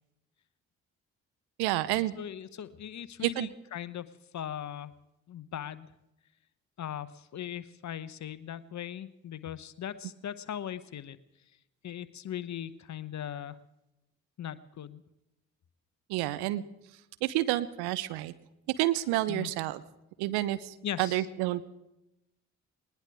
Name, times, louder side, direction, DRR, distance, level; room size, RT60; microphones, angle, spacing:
voice 1, 1.6-2.1 3.2-3.5 16.1-16.6 17.2-18.3 18.7-19.8 20.2-21.7, right 16 dB, 65° right, 15 dB, 0.8 m, -29 dB
voice 2, 2.2-4.9 5.3-5.9 6.8-11.2 11.8-13.6 14.4-15.0 19.3-19.5 20.8-21.2, left 10 dB, 40° left, 15 dB, 1.0 m, -39 dB
20.5 x 20.0 x 3.5 m, 0.91 s
figure-of-eight pair, 40°, 42 cm